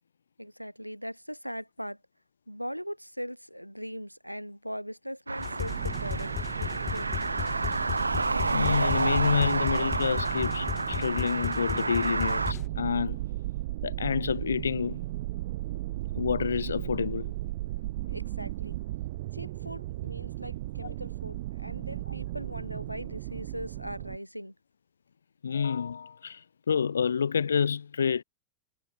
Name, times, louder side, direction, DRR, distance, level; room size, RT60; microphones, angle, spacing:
voice 1, 0.4-2.0 2.5-7.5 18.1-18.8 19.3-24.5, equal, 90° left, 2.6 m, -40 dB
sound 1, 5.3-12.5, right 3 dB, 80° right, 0.5 m, -30 dB
sound 2, 5.4-12.7, left 14 dB, 35° left, 2.7 m, -37 dB
sound 3, 5.6-24.2, right 17 dB, 55° right, 2.3 m, -36 dB
voice 2, 8.5-13.2 13.8-15.0 16.2-17.3 20.8-20.9 25.4-28.2, left 6 dB, 70° left, 2.0 m, -28 dB
figure-of-eight pair, 90°, 0 cm